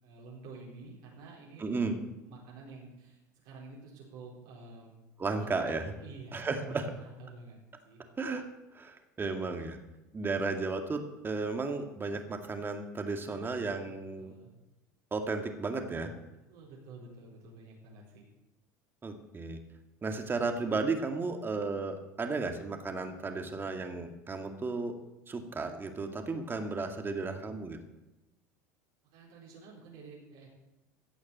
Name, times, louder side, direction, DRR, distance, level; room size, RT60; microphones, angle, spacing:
voice 1, 0.0-1.7 2.2-5.0 5.4-7.6 7.8-8.0 13.0-13.7 14.2-14.5 16.5-18.3 29.0-30.5, right 3 dB, 70° right, -4 dB, 4.6 m, -50 dB
voice 2, 1.6-2.0 5.2-5.9 6.3-6.9 8.2-8.4 8.7-9.8 10.1-14.3 15.1-16.1 19.0-19.6 20.0-24.9 25.3-27.8, right 3 dB, 25° right, 5 dB, 2.2 m, -34 dB
15.5 x 6.3 x 8.8 m, 0.99 s
hypercardioid pair, 85°, 9 cm